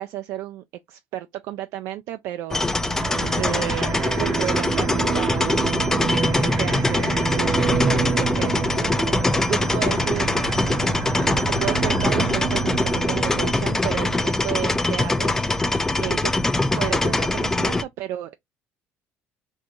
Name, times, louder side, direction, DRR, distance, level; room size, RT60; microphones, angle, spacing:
voice 1, 0.0-5.6 6.3-9.0 9.5-10.4 10.7-10.8 11.5-16.3 16.8-18.4, right 13 dB, 70° right, 0.3 m, -32 dB
sound 1, 2.5-17.8, left 2 dB, 10° left, 0.4 m, -23 dB
sound 2, 2.9-13.7, right 5 dB, 55° right, 0.7 m, -27 dB
3.7 x 2.5 x 2.8 m
cardioid pair, 110°, 5 cm